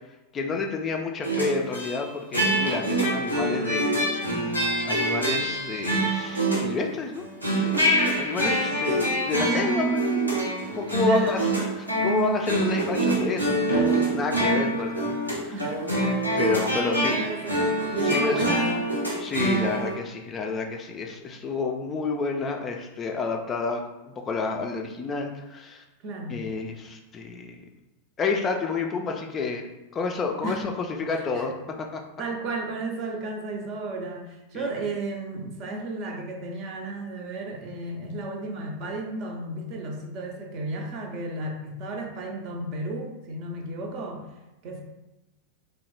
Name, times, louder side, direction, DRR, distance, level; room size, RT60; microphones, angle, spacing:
voice 1, 0.3-4.0 4.8-7.2 7.5-10.4 10.8-11.4 11.8-15.5 16.4-17.1 18.0-18.5 19.2-25.8 26.3-27.6 28.2-32.0 34.5-34.7, left 4 dB, 25° left, 2 dB, 0.3 m, -29 dB
sound 1, 1.2-2.0 2.3-6.9 7.1-19.9, right 1 dB, 90° right, 0.7 m, -25 dB
voice 2, 15.5-15.8 16.5-18.9 26.0-26.4 30.4-30.6 31.1-31.5 32.2-44.3 44.6-44.8, right 2 dB, 40° right, 1 dB, 0.5 m, -33 dB
2.9 x 2.0 x 3.1 m, 1.0 s
figure-of-eight pair, 90°, 0 cm